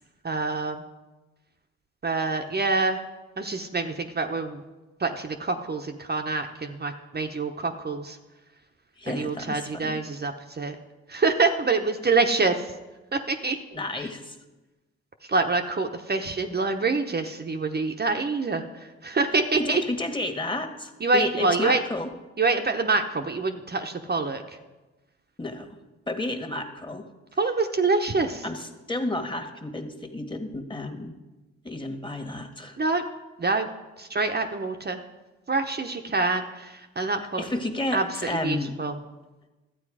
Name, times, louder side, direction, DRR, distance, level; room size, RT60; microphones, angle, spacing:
voice 1, 0.2-0.8 2.0-3.0 3.4-4.6 5.0-8.2 9.1-10.8 11.1-12.7 13.1-13.6 15.3-19.8 21.0-21.8 22.4-24.4 27.4-28.4 32.8-33.0 33.4-33.7 34.0-35.0 35.5-37.5 37.9-38.9, right 3 dB, 35° right, 5 dB, 1.0 m, -26 dB
voice 2, 9.0-10.0 13.7-14.4 19.5-22.1 25.4-25.8 26.1-27.1 28.4-31.2 31.6-32.8 37.2-38.7, left 2 dB, 15° left, 6 dB, 1.6 m, -31 dB
12.5 x 8.5 x 4.9 m, 1.1 s
supercardioid pair, 55°, 29 cm